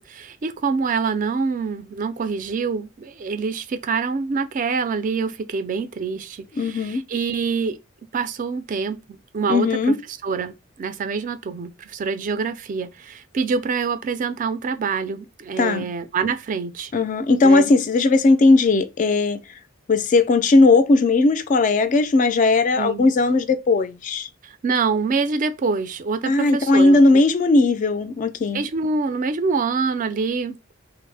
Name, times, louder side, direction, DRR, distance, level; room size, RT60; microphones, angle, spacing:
voice 1, 0.1-7.8 8.1-10.0 10.2-16.9 17.4-17.7 22.8-23.1 24.4-27.2 28.5-30.6, right 5 dB, 40° right, 0.3 m, -26 dB
voice 2, 6.6-7.0 9.5-10.0 15.6-15.9 16.9-19.4 19.9-24.3 26.3-28.7, left 3 dB, 40° left, 0.3 m, -17 dB
3.3 x 2.0 x 3.2 m
head